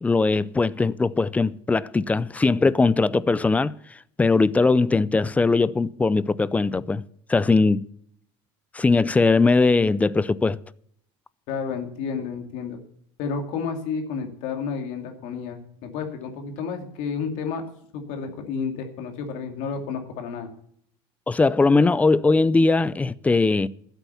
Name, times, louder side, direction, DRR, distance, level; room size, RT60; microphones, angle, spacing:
voice 1, 0.0-3.7 4.2-7.0 7.3-7.8 8.7-10.6 21.3-23.7, left 3 dB, 10° left, 0.4 m, -20 dB
voice 2, 11.5-12.8 13.2-17.7 17.9-20.5, left 5 dB, 70° left, 2.5 m, -31 dB
12.5 x 8.1 x 7.0 m
cardioid pair, 135°, 13 cm